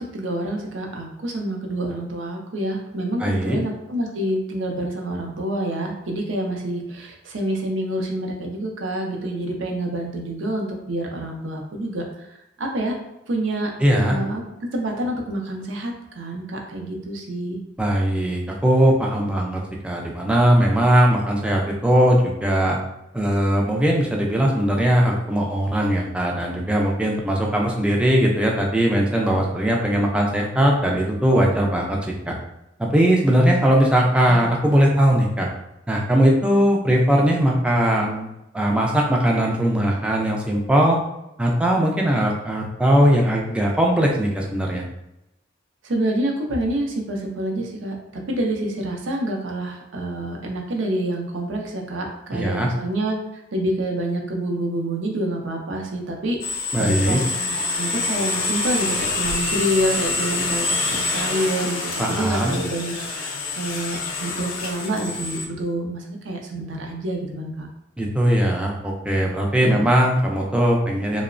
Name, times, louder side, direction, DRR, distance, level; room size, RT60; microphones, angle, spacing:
voice 1, 0.0-12.0 12.6-13.0 13.3-13.7 14.0-14.4 14.7-17.6 34.3-34.4 45.8-56.4 56.8-67.7 69.6-69.8, right 1 dB, 70° right, 1 dB, 0.5 m, -27 dB
voice 2, 3.2-3.6 13.8-14.2 17.8-22.8 23.1-32.0 32.3-32.4 32.8-35.5 35.9-41.0 41.4-44.8 52.3-52.7 56.7-57.2 62.0-62.5 68.0-71.2, equal, 5° right, -1 dB, 0.3 m, -19 dB
sound 1, 56.4-65.5, left 3 dB, 80° left, 0.5 m, -26 dB
2.9 x 2.0 x 2.4 m, 0.89 s
head